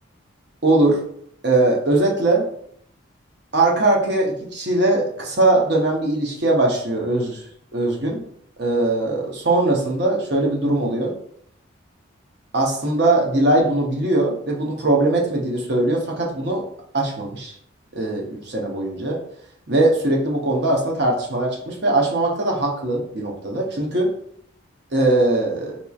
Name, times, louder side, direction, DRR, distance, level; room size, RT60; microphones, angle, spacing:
voice 1, 0.6-1.0 1.4-2.4 3.5-7.4 7.7-8.2 8.6-11.1 12.5-16.6 16.9-17.5 17.9-19.2 19.7-24.1 24.9-25.8, right 2 dB, 55° right, -1 dB, 0.7 m, -20 dB
3.9 x 3.0 x 2.3 m, 0.67 s
head